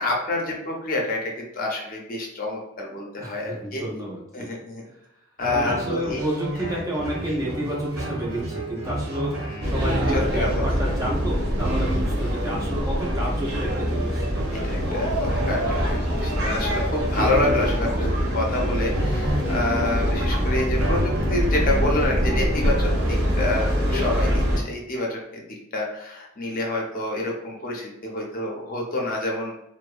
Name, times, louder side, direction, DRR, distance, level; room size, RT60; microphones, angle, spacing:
voice 1, 0.0-3.8 4.3-4.9 5.4-6.2 6.7-6.8 9.4-9.7 10.1-10.7 14.5-15.1 15.4-29.5, left 2 dB, 40° left, 0 dB, 0.5 m, -28 dB
voice 2, 3.2-4.5 5.5-14.3 24.3-24.4, right 1 dB, 15° right, -3 dB, 0.4 m, -30 dB
sound 1, 5.4-22.8, right 1 dB, 85° right, 0.8 m, -32 dB
sound 2, 9.6-24.6, equal, 55° right, 0.7 m, -24 dB
2.6 x 2.0 x 2.3 m, 0.87 s
head